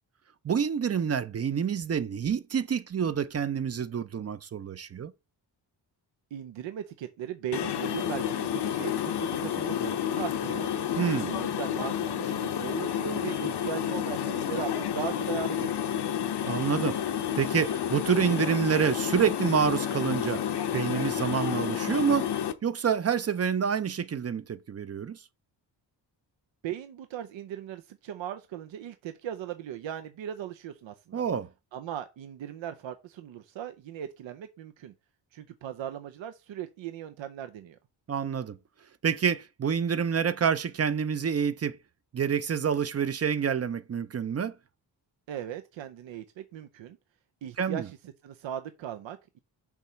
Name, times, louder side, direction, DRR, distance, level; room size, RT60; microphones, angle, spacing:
voice 1, 0.4-5.1 11.0-11.3 16.5-17.0 17.4-20.4 20.7-22.3 22.6-25.2 31.1-31.5 38.1-38.6 39.0-41.8 42.1-44.5 47.6-47.9, right 7 dB, 35° right, 0.5 m, -27 dB
voice 2, 6.3-10.7 11.2-15.9 26.6-31.3 31.7-34.9 35.3-37.8 45.3-47.0 47.4-49.4, right 10 dB, 80° right, 0.7 m, -38 dB
sound 1, 7.5-22.5, left 9 dB, 60° left, 0.8 m, -30 dB
7.1 x 3.1 x 5.6 m
cardioid pair, 110°, 44 cm